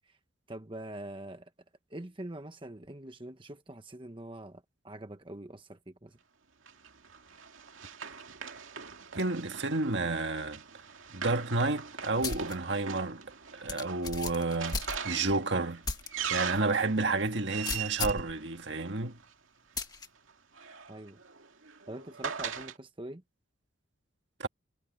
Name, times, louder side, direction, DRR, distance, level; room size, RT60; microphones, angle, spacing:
voice 1, 0.5-1.5 1.9-6.2 20.9-21.2 21.9-23.2, right 1 dB, 25° right, 1.2 m, -44 dB
Run, 6.7-19.3 20.3-22.8, right 7 dB, 85° right, 2.2 m, -41 dB
voice 2, 9.1-10.6 11.1-13.2 13.5-15.8 16.3-19.2 24.4-24.5, right 3 dB, 60° right, 1.7 m, -30 dB
sound 1, 12.2-12.6 13.0-13.1 13.7-15.4 15.8-16.1 16.5-16.6 17.6-18.3 19.8-20.1, left 3 dB, 20° left, 1.9 m, -35 dB
head